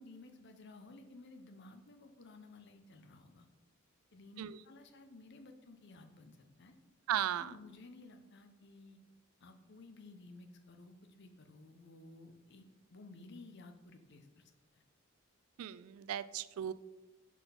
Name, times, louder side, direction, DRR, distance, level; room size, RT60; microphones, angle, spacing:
voice 1, 0.0-3.5 4.1-6.7 7.4-9.0 9.4-14.8, left 2 dB, 50° left, 6 dB, 0.7 m, -55 dB
voice 2, 7.1-7.5 15.6-16.7, right 10 dB, 80° right, 15 dB, 0.3 m, -36 dB
5.9 x 3.9 x 5.7 m, 1.1 s
head